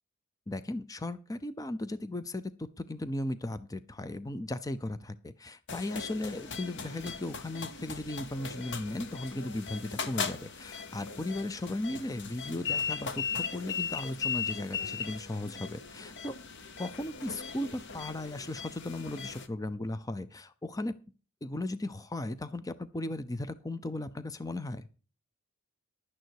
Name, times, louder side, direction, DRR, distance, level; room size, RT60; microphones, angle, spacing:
voice 1, 0.5-16.4 16.8-20.9 21.4-24.9, left 1 dB, 15° left, 14 dB, 0.5 m, -36 dB
sound 1, 5.7-19.5, left 5 dB, 55° left, 1.1 m, -38 dB
11.5 x 9.3 x 4.7 m, 0.36 s
head